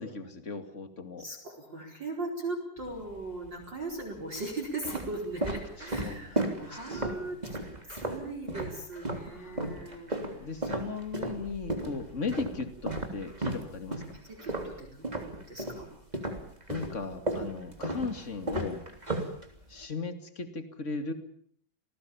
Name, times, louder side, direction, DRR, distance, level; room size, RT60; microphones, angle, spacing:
voice 1, 0.0-1.3 5.8-7.6 9.3-10.0 10.4-14.0 16.7-18.8 19.7-21.1, left 4 dB, 25° left, 7 dB, 1.9 m, -37 dB
voice 2, 1.2-7.6 7.9-10.4 11.7-11.9 14.3-15.9, right 2 dB, 30° right, 2 dB, 5.1 m, -39 dB
sound 1, 2.8-3.5 4.2-9.3 9.6-15.8 16.1-19.8, right 1 dB, 10° right, 2.9 m, -34 dB
28.5 x 19.5 x 7.3 m, 0.62 s
omnidirectional pair, 4.3 m